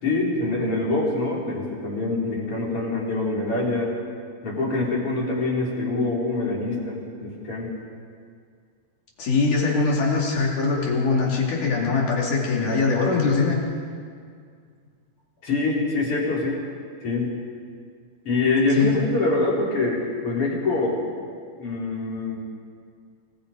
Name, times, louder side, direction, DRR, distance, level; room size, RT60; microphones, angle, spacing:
voice 1, 0.0-3.9 4.4-7.7 15.4-16.6 17.0-17.3 18.2-21.0 21.6-22.4, left 2 dB, 35° left, -4 dB, 4.9 m, -25 dB
voice 2, 9.2-13.6 18.7-19.0, left 4 dB, 50° left, -3 dB, 5.0 m, -22 dB
27.5 x 20.0 x 5.3 m, 2.1 s
omnidirectional pair, 4.7 m